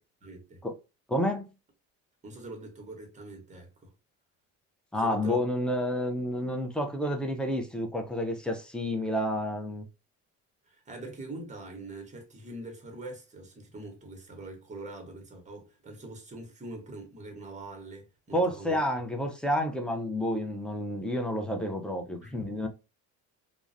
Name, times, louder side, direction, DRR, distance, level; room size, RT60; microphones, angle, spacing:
voice 1, 0.2-0.6 2.2-3.9 5.0-5.4 10.7-18.8 22.2-22.4, right 2 dB, 20° right, 1.0 m, -43 dB
voice 2, 1.1-1.5 4.9-9.9 18.3-22.7, equal, 5° left, 0.5 m, -30 dB
2.3 x 2.0 x 2.6 m
supercardioid pair, 95°, 36 cm